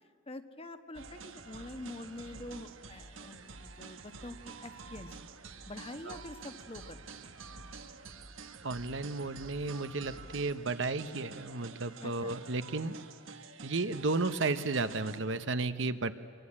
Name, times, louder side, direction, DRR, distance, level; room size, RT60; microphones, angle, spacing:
voice 1, 0.3-5.2 5.7-7.0 12.0-12.3, left 1 dB, 30° left, 8 dB, 1.3 m, -46 dB
sound 1, 0.9-15.2, right 4 dB, 85° right, 1.5 m, -49 dB
voice 2, 8.6-12.9 13.6-16.1, right 3 dB, 65° right, 11 dB, 1.0 m, -33 dB
27.5 x 23.5 x 8.7 m, 2.4 s
head